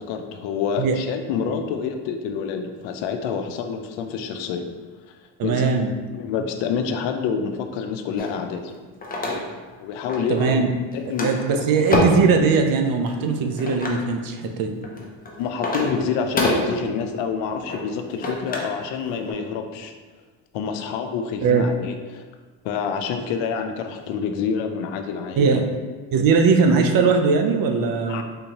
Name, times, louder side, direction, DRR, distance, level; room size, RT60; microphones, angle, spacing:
voice 1, 0.0-4.7 5.1-5.2 5.4-5.7 6.1-8.7 9.8-10.6 10.9-11.3 11.5-11.6 15.4-19.9 20.5-22.3 22.6-25.6 28.1-28.2, left 6 dB, 80° left, 6 dB, 0.5 m, -27 dB
voice 2, 5.4-5.9 10.3-10.7 11.2-14.7 21.4-21.7 25.4-25.6 26.1-28.2, right 5 dB, 50° right, 5 dB, 0.5 m, -19 dB
sound 1, 8.2-9.8 10.1-10.6 10.9-12.3 13.0-14.0 14.7-18.8 19.1-19.3, left 1 dB, 20° left, 0.5 m, -27 dB
3.6 x 2.7 x 2.9 m, 1.4 s
cardioid pair, 110°, 45 cm